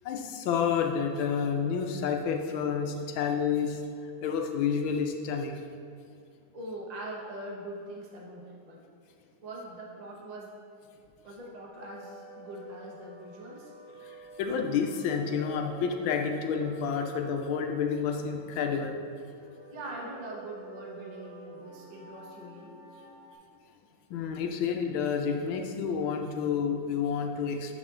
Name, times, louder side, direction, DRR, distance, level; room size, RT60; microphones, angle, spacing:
voice 1, 0.0-3.8 4.2-5.6 14.0-19.0 24.1-27.8, left 6 dB, 75° left, 4 dB, 1.3 m, -29 dB
voice 2, 6.5-8.8 9.4-10.6 11.2-13.7 19.7-22.7 24.1-24.2, right 1 dB, 80° right, -2 dB, 0.3 m, -42 dB
sound 1, 11.7-23.3, left 1 dB, 10° right, 0.7 m, -49 dB
8.3 x 4.3 x 3.7 m, 2.4 s
omnidirectional pair, 2.4 m